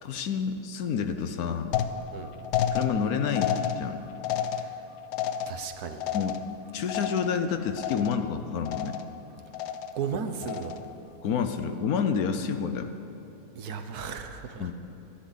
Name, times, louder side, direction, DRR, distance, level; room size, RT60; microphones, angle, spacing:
voice 1, 0.0-1.8 2.7-4.0 6.1-6.4 6.7-9.0 11.2-12.9 14.6-14.7, left 6 dB, 65° left, 8 dB, 1.2 m, -29 dB
sound 1, 1.7-7.5 7.8-8.3 8.7-9.2 9.5-10.1 10.4-11.0, left 9 dB, 85° left, 1.2 m, -32 dB
voice 2, 4.5-4.8 5.4-6.0 9.9-10.8 13.5-14.7, right 6 dB, 70° right, 7 dB, 1.4 m, -35 dB
27.5 x 10.0 x 4.0 m, 2.9 s
omnidirectional pair, 1.7 m